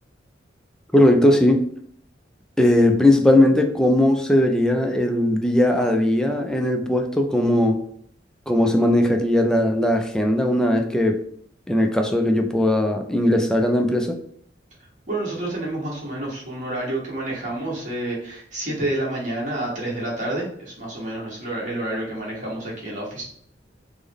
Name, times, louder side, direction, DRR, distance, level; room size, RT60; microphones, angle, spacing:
voice 1, 0.9-1.7 2.6-7.8 8.5-11.2 11.7-14.2, left 1 dB, 5° left, 3 dB, 0.3 m, -19 dB
voice 2, 15.1-23.2, right 1 dB, 45° right, -4 dB, 1.3 m, -29 dB
3.6 x 2.1 x 3.4 m, 0.63 s
head